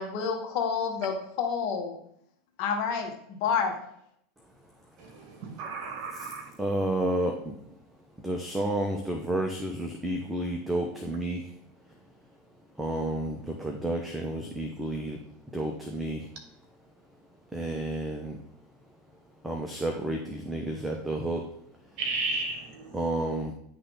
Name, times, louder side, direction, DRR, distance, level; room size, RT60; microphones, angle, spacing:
voice 1, 0.0-2.0 2.6-3.1 3.4-3.8, left 6 dB, 55° left, 1.4 m, -28 dB
voice 2, 5.0-6.5 22.0-23.0, right 3 dB, 55° right, 1.8 m, -34 dB
voice 3, 6.6-7.6 8.2-11.5 12.8-15.2 15.5-16.3 17.5-18.4 19.4-21.6 22.9-23.5, right 1 dB, 10° right, 0.8 m, -31 dB
9.9 x 3.3 x 3.8 m
supercardioid pair, 120°, 0 cm